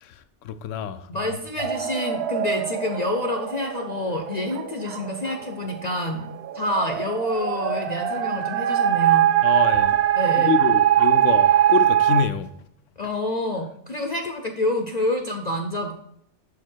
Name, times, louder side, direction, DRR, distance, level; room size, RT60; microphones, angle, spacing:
voice 1, 0.0-1.4 9.4-10.0 10.3-12.5, left 8 dB, 90° left, 0.9 m, -27 dB
voice 2, 1.1-6.3 6.5-9.3 10.2-10.6 13.0-15.9, left 1 dB, 45° left, 0.6 m, -28 dB
sound 1, 1.6-12.2, right 11 dB, 65° right, 0.9 m, -22 dB
6.7 x 4.8 x 4.5 m
omnidirectional pair, 1.2 m